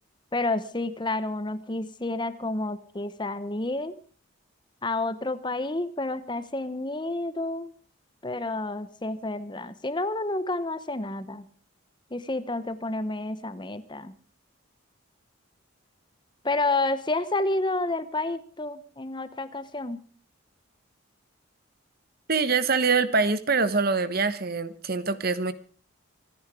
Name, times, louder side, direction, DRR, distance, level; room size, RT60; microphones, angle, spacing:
voice 1, 0.3-3.9 4.8-7.7 8.2-11.5 12.1-14.1 16.4-20.0, left 2 dB, 20° left, 14 dB, 0.8 m, -30 dB
voice 2, 22.3-25.5, right 4 dB, 45° right, 14 dB, 1.2 m, -24 dB
25.5 x 10.5 x 4.9 m, 0.41 s
head